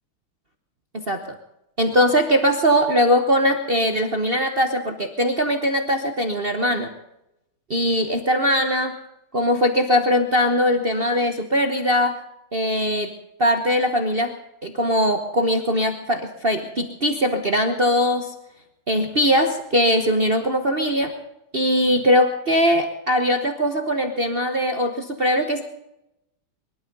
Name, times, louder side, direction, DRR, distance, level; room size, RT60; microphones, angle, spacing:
voice 1, 0.9-1.4 1.8-6.9 7.7-9.0 9.3-12.2 12.5-13.1 13.4-14.3 14.6-18.3 18.9-21.2 21.5-25.6, equal, 35° right, 5 dB, 1.0 m, -21 dB
22.5 x 12.0 x 5.4 m, 0.86 s
omnidirectional pair, 2.4 m